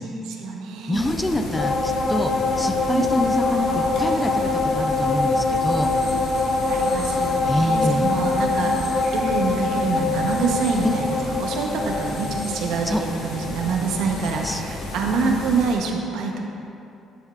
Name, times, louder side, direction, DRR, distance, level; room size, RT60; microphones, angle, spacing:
voice 1, 0.0-1.1 2.9-3.1 6.7-8.7 9.1-16.4, right 4 dB, 75° right, 1 dB, 0.9 m, -26 dB
sound 1, 0.9-15.7, left 1 dB, 80° left, 1.8 m, -33 dB
voice 2, 0.9-2.3 2.6-5.9 7.5-8.1 10.8-11.0 12.9-13.0 14.4-14.6, left 1 dB, 10° left, 5 dB, 0.3 m, -25 dB
sound 2, 1.5-15.2 15.6-15.7, left 3 dB, 40° left, 1.0 m, -24 dB
11.0 x 7.1 x 2.4 m, 2.7 s
cardioid pair, 155°, 0 cm